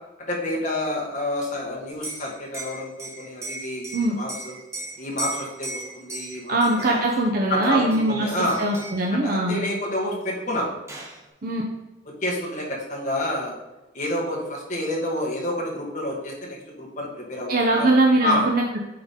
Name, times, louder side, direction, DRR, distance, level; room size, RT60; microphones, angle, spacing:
voice 1, 0.3-4.6 5.0-7.1 7.5-8.6 9.1-10.7 12.2-13.5 13.9-17.9 18.2-18.5, left 1 dB, 40° left, -2 dB, 1.9 m, -28 dB
Liquid, 1.9-7.2 7.6-8.2 8.5-9.1 10.2-10.3 10.6-11.2, right 2 dB, 15° right, 0.9 m, -37 dB
voice 2, 6.5-8.3 8.6-9.6 11.4-11.6 17.5-18.8, right 2 dB, 50° right, 0 dB, 0.7 m, -21 dB
8.7 x 3.9 x 3.7 m, 1.1 s
head